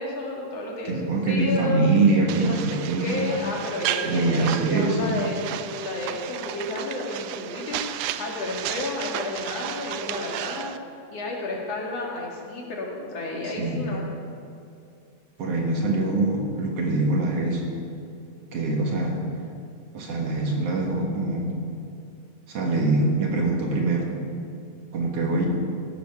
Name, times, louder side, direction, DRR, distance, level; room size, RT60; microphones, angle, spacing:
voice 1, 0.0-1.9 2.4-2.6 3.0-10.7 11.1-14.1, left 2 dB, 55° left, -2 dB, 3.2 m, -31 dB
voice 2, 0.8-3.3 4.0-5.2 13.4-13.8 15.4-17.7 18.5-19.2 19.9-21.6 22.5-24.2 24.9-25.5, right 2 dB, 55° right, 0 dB, 2.5 m, -24 dB
sound 1, 2.3-10.8, right 12 dB, 80° right, 1.5 m, -33 dB
15.5 x 12.5 x 6.0 m, 2.6 s
omnidirectional pair, 3.4 m